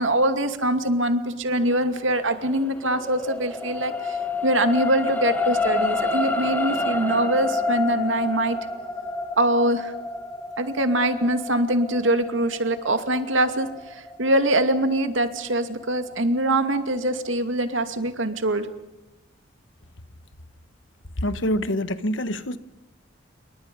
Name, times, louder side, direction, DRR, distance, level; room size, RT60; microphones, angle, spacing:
voice 1, 0.0-8.6 9.4-9.9 10.6-18.7, right 1 dB, 90° right, 2.5 m, -23 dB
sound 1, 2.5-15.0 15.5-15.6, left 2 dB, 10° left, 1.6 m, -28 dB
voice 2, 21.2-22.6, equal, 80° left, 1.4 m, -25 dB
28.5 x 24.0 x 5.5 m
head